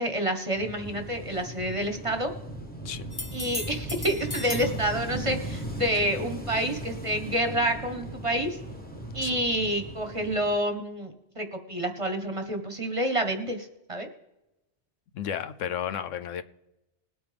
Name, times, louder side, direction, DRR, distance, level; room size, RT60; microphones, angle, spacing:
voice 1, 0.0-2.3 3.3-8.5 9.1-14.1, right 1 dB, 25° right, 6 dB, 1.1 m, -28 dB
Wind / Waves surf, 0.5-10.5, right 1 dB, 5° left, 1.1 m, -38 dB
sound 1, 3.1-4.8 8.4-8.5, left 2 dB, 25° left, 0.6 m, -37 dB
voice 2, 15.1-16.4, left 9 dB, 75° left, 11 dB, 1.0 m, -33 dB
20.5 x 8.7 x 3.4 m, 0.94 s
omnidirectional pair, 1.3 m